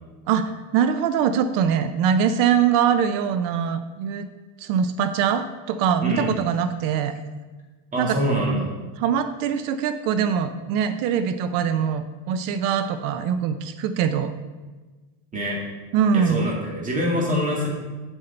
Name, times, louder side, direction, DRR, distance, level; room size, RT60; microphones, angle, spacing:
voice 1, 0.3-4.3 4.6-7.2 8.0-8.2 9.0-14.3 15.9-16.5, right 7 dB, 45° right, 10 dB, 0.5 m, -23 dB
voice 2, 7.9-8.7 15.3-15.6 16.1-17.7, equal, 15° right, -3 dB, 2.1 m, -24 dB
8.1 x 7.8 x 4.3 m, 1.3 s
cardioid pair, 160°, 49 cm